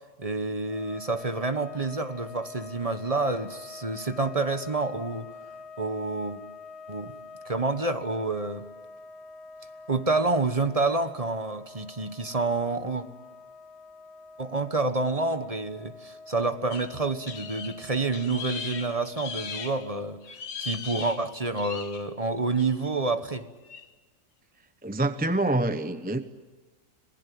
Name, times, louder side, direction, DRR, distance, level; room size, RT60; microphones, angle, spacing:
voice 1, 0.2-5.3 5.8-6.4 6.9-7.1 7.4-8.6 9.9-13.1 14.4-20.2 20.6-23.5, right 3 dB, 25° right, 10 dB, 1.1 m, -28 dB
sound 1, 0.6-20.3, left 4 dB, 45° left, 1.5 m, -46 dB
sound 2, 16.7-19.9 20.2-22.1 22.6-22.9 23.6-23.9, left 6 dB, 90° left, 1.9 m, -39 dB
voice 2, 24.8-26.2, right 2 dB, 10° right, 10 dB, 0.6 m, -26 dB
26.5 x 20.5 x 9.4 m, 1.3 s
omnidirectional pair, 1.7 m